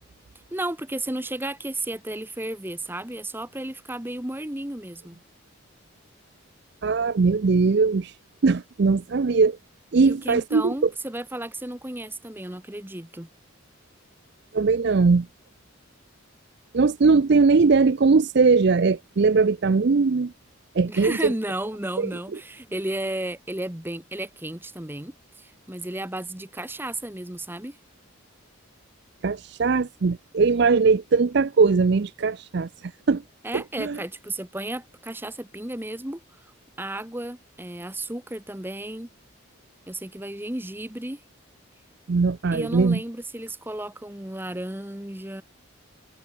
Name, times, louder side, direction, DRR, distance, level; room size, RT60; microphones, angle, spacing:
voice 1, 0.5-5.2 10.0-13.3 20.9-27.8 33.4-36.5 36.8-39.1 39.9-41.2 42.5-45.4, right 1 dB, 10° right, 1.1 m, -33 dB
voice 2, 6.8-8.1 8.4-9.6 9.9-10.9 14.5-15.3 16.7-20.3 20.7-21.3 22.0-22.1 29.2-33.2 33.5-34.0 42.1-43.0, right 4 dB, 50° right, 0.5 m, -20 dB
head